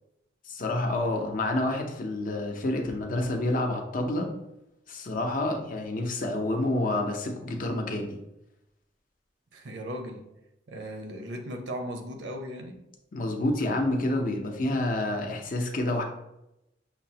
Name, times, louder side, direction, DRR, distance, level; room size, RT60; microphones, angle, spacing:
voice 1, 0.5-4.3 4.9-8.2 13.1-16.0, left 1 dB, 45° left, 2 dB, 0.6 m, -28 dB
voice 2, 9.5-10.2 10.7-12.8, equal, 70° right, 4 dB, 0.6 m, -37 dB
5.8 x 2.0 x 2.7 m, 0.87 s
head